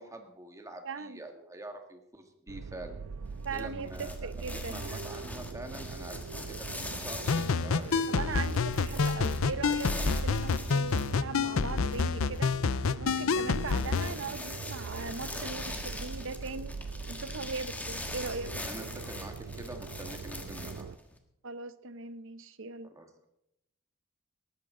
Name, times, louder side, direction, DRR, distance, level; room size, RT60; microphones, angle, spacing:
voice 1, 0.0-3.0 3.5-6.2 6.5-8.0 8.9-9.2 18.6-20.9 22.9-23.3, right 1 dB, 15° right, 4 dB, 1.7 m, -46 dB
voice 2, 0.8-1.2 3.4-5.0 8.1-12.5 12.9-16.8 17.1-18.5 21.4-22.9, right 4 dB, 65° right, 13 dB, 0.8 m, -39 dB
sound 1, 2.5-21.0, right 5 dB, 85° right, 0.5 m, -42 dB
sound 2, 3.2-21.2, left 1 dB, 10° left, 1.5 m, -43 dB
sound 3, 7.3-14.1, left 5 dB, 70° left, 0.6 m, -28 dB
18.5 x 14.0 x 3.8 m, 0.82 s
head